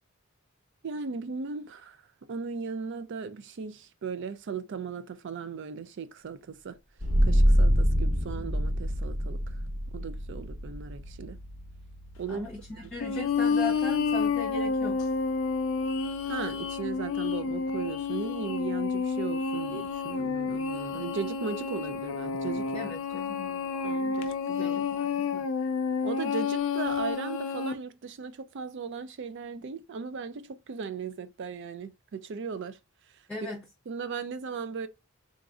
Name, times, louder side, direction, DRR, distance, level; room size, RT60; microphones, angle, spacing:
voice 1, 0.8-2.0 2.3-6.8 7.2-9.4 9.9-11.4 12.2-12.5 12.8-12.9 16.3-22.7 23.8-24.8 26.0-32.8 33.9-34.9, right 5 dB, 55° right, 0.4 m, -37 dB
sound 1, 7.0-18.3, equal, 85° right, 1.8 m, -29 dB
voice 2, 12.3-15.0 22.7-23.6 24.6-25.5 33.3-33.6, left 3 dB, 5° left, 0.9 m, -38 dB
sound 2, 13.0-27.7, left 5 dB, 65° left, 0.4 m, -30 dB
4.0 x 2.5 x 2.4 m
head